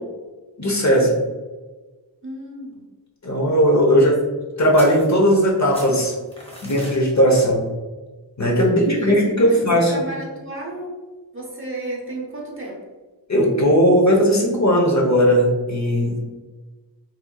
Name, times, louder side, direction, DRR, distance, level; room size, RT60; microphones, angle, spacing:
voice 1, 0.6-1.2 3.2-4.2 4.6-6.1 6.6-7.6 8.4-9.9 13.3-16.3, equal, 40° left, -1 dB, 0.9 m, -17 dB
voice 2, 2.2-2.8 3.9-4.0 8.6-9.2 9.5-11.0 11.3-12.8, right 2 dB, 30° right, -3 dB, 0.9 m, -33 dB
sound 1, 4.8-5.5 5.7-7.0, equal, 15° left, 1.2 m, -39 dB
4.3 x 2.8 x 2.3 m, 1.3 s
wide cardioid pair, 65°, 43 cm